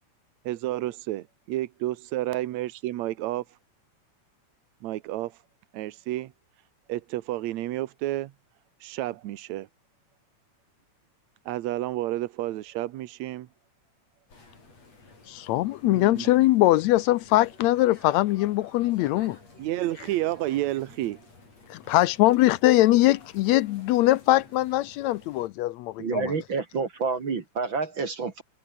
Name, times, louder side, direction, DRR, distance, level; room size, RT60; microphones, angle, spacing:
voice 1, 0.5-3.4 4.8-5.3 5.7-6.3 6.9-8.3 8.8-9.7 11.5-13.5 15.8-16.3 19.6-21.2, right 15 dB, 70° right, 2.2 m, -30 dB
sound 1, 14.3-25.5, left 3 dB, 55° left, 8.3 m, -52 dB
voice 2, 15.3-19.4 21.7-26.3, left 16 dB, 80° left, 1.8 m, -22 dB
voice 3, 26.0-28.4, right 4 dB, 40° right, 2.6 m, -29 dB
omnidirectional pair, 3.5 m